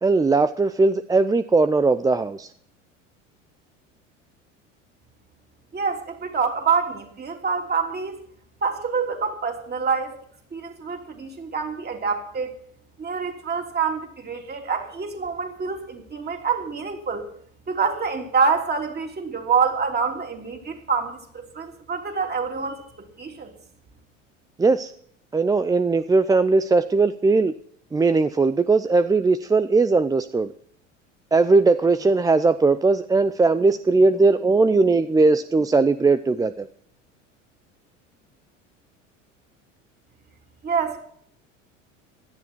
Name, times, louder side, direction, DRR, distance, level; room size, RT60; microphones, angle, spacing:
voice 1, 0.0-2.5 24.6-24.9 25.3-27.5 27.9-30.5 31.3-36.7, right 3 dB, 10° right, 13 dB, 0.5 m, -19 dB
voice 2, 5.7-8.2 8.6-10.1 10.5-12.5 13.0-17.3 17.7-22.8 23.2-23.5 40.6-41.0, right 5 dB, 25° right, 3 dB, 3.2 m, -26 dB
16.5 x 11.5 x 4.5 m, 0.64 s
figure-of-eight pair, 70°, 37 cm